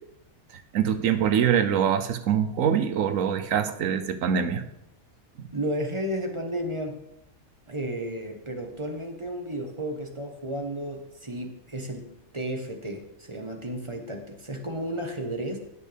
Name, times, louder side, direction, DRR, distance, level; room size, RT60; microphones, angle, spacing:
voice 1, 0.7-4.6 5.4-5.5, right 8 dB, 70° right, 10 dB, 1.1 m, -24 dB
voice 2, 5.5-7.0 7.7-15.6, right 1 dB, 25° right, 3 dB, 1.2 m, -33 dB
17.5 x 6.4 x 3.4 m, 0.84 s
omnidirectional pair, 1.5 m